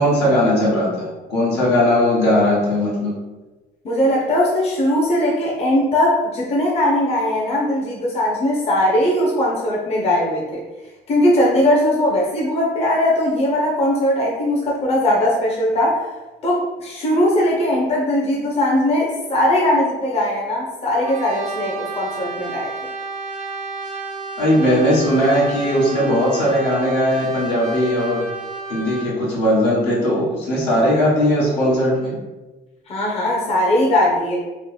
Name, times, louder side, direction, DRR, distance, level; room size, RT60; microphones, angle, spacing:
voice 1, 0.0-3.1 24.4-28.3 28.7-32.2, equal, 80° left, -6 dB, 1.2 m, -18 dB
voice 2, 3.8-10.6 11.1-16.0 16.4-22.7 32.9-34.4, left 1 dB, 35° left, -4 dB, 0.7 m, -19 dB
Brass instrument, 21.0-29.1, right 4 dB, 45° right, 0.5 m, -31 dB
3.2 x 2.1 x 3.1 m, 1.2 s
cardioid pair, 110°, 17 cm